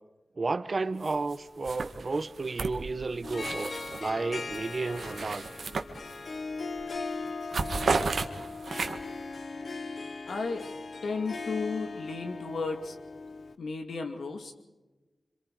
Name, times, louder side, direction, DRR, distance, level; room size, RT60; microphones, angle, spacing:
voice 1, 0.4-3.7 4.0-5.4, right 3 dB, 45° right, 12 dB, 1.1 m, -32 dB
sound 1, 1.0-1.4 1.6-4.1 4.5-6.4 6.8-7.0 7.3-9.2, right 4 dB, 70° right, 1.7 m, -33 dB
Harp, 3.2-13.5, left 3 dB, 60° left, 1.1 m, -39 dB
voice 2, 10.3-10.7 11.0-13.0 13.6-14.5, left 4 dB, 85° left, 5 dB, 2.5 m, -34 dB
27.0 x 26.0 x 4.9 m, 1.1 s
wide cardioid pair, 100°, 0 cm